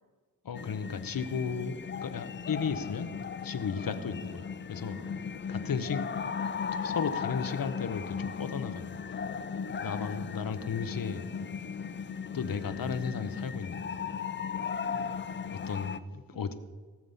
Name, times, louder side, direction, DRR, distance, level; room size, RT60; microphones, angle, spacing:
voice 1, 0.4-3.1 3.4-5.0 5.5-6.0 6.7-8.9 9.8-11.3 12.3-14.0 15.5-16.5, left 6 dB, 65° left, 11 dB, 0.9 m, -34 dB
sound 1, 0.5-16.0, left 6 dB, 30° left, 0.4 m, -37 dB
voice 2, 4.8-6.4 9.7-10.5 16.3-16.4, left 2 dB, 20° right, -2 dB, 3.2 m, -55 dB
17.5 x 7.3 x 5.5 m, 1.4 s
wide cardioid pair, 145°, 37 cm